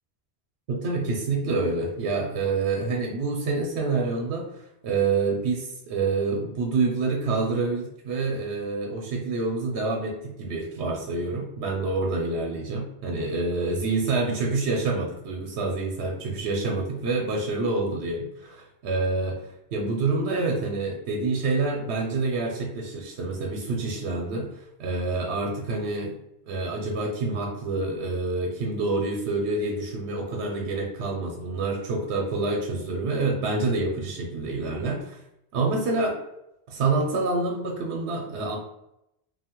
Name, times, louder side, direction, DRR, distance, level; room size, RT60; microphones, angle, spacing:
voice 1, 0.7-19.4 19.7-26.1 26.5-35.2 35.5-36.2 36.7-38.6, right 3 dB, 85° right, 0 dB, 0.9 m, -27 dB
2.7 x 2.1 x 2.8 m, 0.84 s
omnidirectional pair, 1.1 m